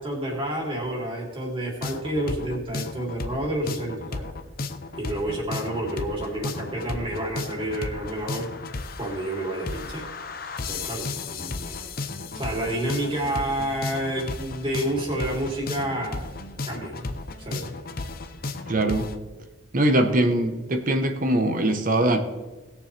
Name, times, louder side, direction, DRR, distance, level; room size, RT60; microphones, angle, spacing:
voice 1, 0.0-4.3 4.9-8.5 9.0-10.0 10.7-11.8 12.3-16.9 17.4-17.7, right 1 dB, 25° right, -2 dB, 3.2 m, -29 dB
sound 1, 1.8-19.2, left 3 dB, 45° left, 0.8 m, -34 dB
voice 2, 18.7-19.1 19.7-22.2, right 1 dB, 40° right, 6 dB, 1.1 m, -22 dB
19.5 x 7.2 x 3.4 m, 1.3 s
head